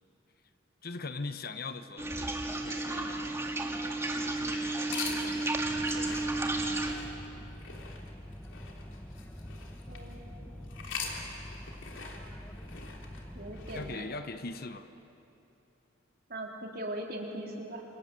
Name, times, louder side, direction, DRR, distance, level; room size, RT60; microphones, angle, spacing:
voice 1, 0.8-3.3 4.1-6.6 13.7-14.9, left 3 dB, 50° left, 10 dB, 1.0 m, -42 dB
sound 1, 2.0-6.9, right 2 dB, 15° right, 1.9 m, -32 dB
sound 2, 4.8-10.1 10.7-14.7, left 5 dB, 70° left, 3.4 m, -44 dB
sound 3, 5.6-14.0, equal, 10° left, 0.8 m, -45 dB
voice 2, 9.9-10.5 13.3-14.1 16.3-17.8, right 1 dB, 50° right, 0 dB, 3.7 m, -40 dB
28.0 x 26.5 x 7.7 m, 2.9 s
head